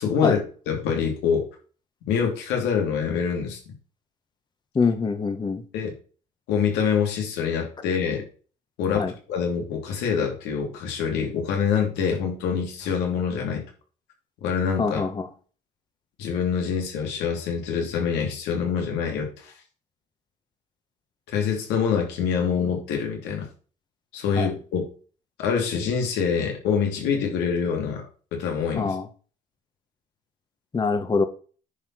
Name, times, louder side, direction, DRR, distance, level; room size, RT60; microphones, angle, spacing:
voice 1, 0.0-1.4 2.1-3.6 5.7-5.9 6.5-8.2 8.8-13.6 14.4-15.0 16.2-19.5 21.3-23.5 24.1-24.8 25.4-28.0 28.3-29.0, left 6 dB, 90° left, 1 dB, 3.3 m, -25 dB
voice 2, 4.7-5.6 8.9-9.1 14.8-15.3 24.4-24.5 28.8-29.1 30.7-31.2, left 4 dB, 25° left, 9 dB, 1.3 m, -24 dB
9.9 x 4.7 x 6.3 m, 0.39 s
cardioid pair, 110°, 17 cm